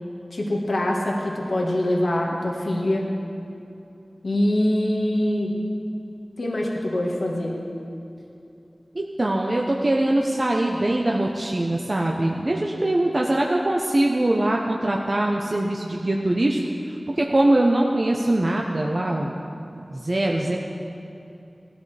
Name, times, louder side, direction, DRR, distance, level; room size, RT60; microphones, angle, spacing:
voice 1, 0.3-3.1 4.2-5.5 6.4-7.5, left 1 dB, 75° left, -2 dB, 1.6 m, -24 dB
voice 2, 8.9-16.6 17.2-19.3 19.9-20.6, right 1 dB, 40° right, -1 dB, 0.9 m, -22 dB
18.0 x 13.0 x 3.4 m, 2.7 s
wide cardioid pair, 70°, 0 cm